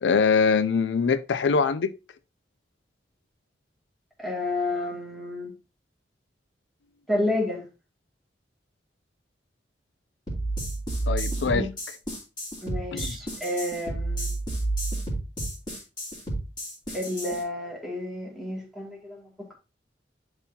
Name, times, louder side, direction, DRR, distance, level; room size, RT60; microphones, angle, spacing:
voice 1, 0.0-1.9 11.1-11.7 12.9-13.2, left 5 dB, 90° left, 0.4 m, -23 dB
voice 2, 4.2-5.5 7.1-7.7 11.4-11.7 12.6-14.3 16.9-19.5, left 1 dB, ahead, 2.5 m, -30 dB
sound 1, 10.3-17.4, right 2 dB, 25° left, 3.0 m, -30 dB
10.5 x 4.0 x 2.8 m
head